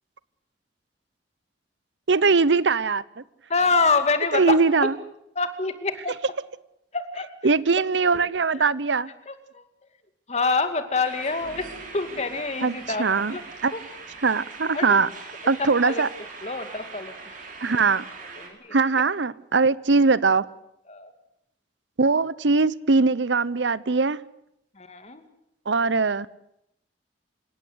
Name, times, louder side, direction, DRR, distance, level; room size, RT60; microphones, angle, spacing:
voice 1, 2.1-3.0 4.3-4.9 7.4-9.1 12.6-12.7 13.0-13.3 13.6-13.7 14.2-15.1 15.5-16.1 17.6-18.0 18.7-20.5 22.0-24.2 25.7-26.3, right 4 dB, 90° right, 0.8 m, -21 dB
voice 2, 3.5-4.6 5.4-6.2 6.9-7.3 8.5-8.6 9.3-9.6 10.3-11.7 11.9-13.4 13.7-13.8 14.7-15.0 15.6-16.0 16.4-17.1 17.7-17.8 18.4-18.8 20.9-21.1 24.8-25.2, left 4 dB, 40° left, 2.4 m, -26 dB
sound 1, 11.0-18.5, right 4 dB, 50° right, 5.5 m, -41 dB
sound 2, 11.4-14.3, left 1 dB, 65° left, 3.8 m, -50 dB
28.0 x 17.5 x 8.1 m
head